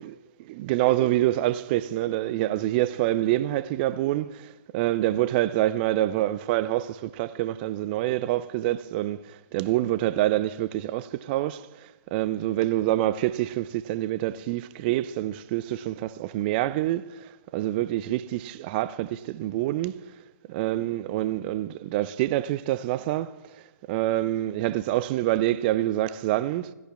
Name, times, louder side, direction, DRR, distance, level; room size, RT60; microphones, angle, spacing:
voice 1, 0.0-20.1 20.5-23.6 23.9-26.7, right 15 dB, 30° right, 0.4 m, -26 dB
22.5 x 14.0 x 2.4 m
figure-of-eight pair, 125°, 10 cm